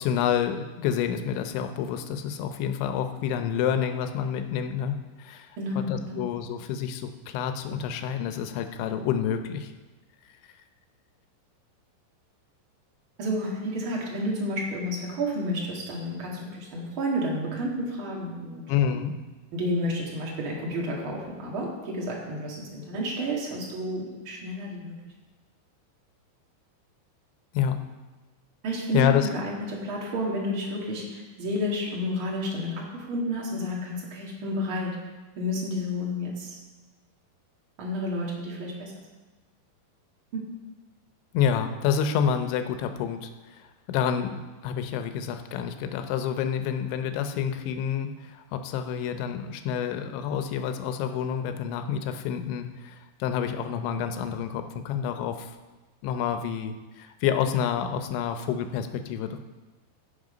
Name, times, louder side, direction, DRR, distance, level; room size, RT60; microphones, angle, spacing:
voice 1, 0.0-9.7 18.7-19.1 27.5-27.8 28.9-29.3 41.3-43.3 43.6-55.5 56.0-59.4, left 8 dB, 85° left, 8 dB, 3.0 m, -28 dB
voice 2, 5.6-6.3 13.2-18.6 19.5-24.9 28.6-35.0 35.4-36.6 37.8-38.9 40.3-40.4, equal, 45° right, -3 dB, 1.9 m, -31 dB
16.0 x 5.9 x 5.1 m, 1.2 s
omnidirectional pair, 5.2 m